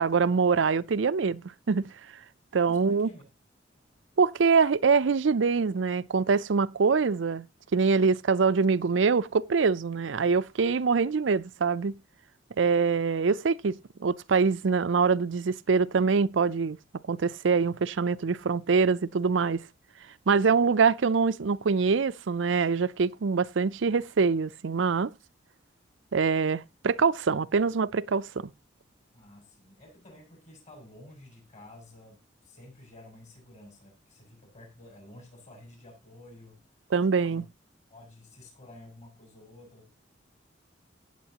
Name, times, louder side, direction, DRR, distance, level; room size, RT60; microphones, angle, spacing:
voice 1, 0.0-1.4 1.7-1.9 2.5-3.1 4.2-7.5 7.7-12.0 12.6-16.8 17.1-19.6 20.3-25.1 26.1-28.5 36.9-37.4, right 5 dB, 80° right, 0.5 m, -24 dB
voice 2, 2.7-3.2 29.1-36.6 37.2-37.4 37.9-39.9, left 1 dB, 40° left, 6.8 m, -51 dB
16.5 x 8.0 x 2.9 m
head